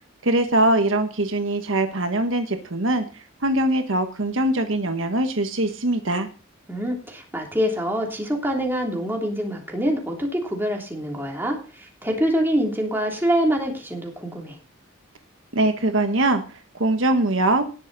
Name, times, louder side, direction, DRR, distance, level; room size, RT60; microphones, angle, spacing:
voice 1, 0.2-3.0 3.4-6.3 15.5-16.4 16.7-17.7, right 1 dB, 70° right, 7 dB, 1.4 m, -22 dB
voice 2, 6.7-14.6, equal, 10° right, 0 dB, 3.2 m, -25 dB
19.0 x 6.8 x 4.1 m, 0.36 s
head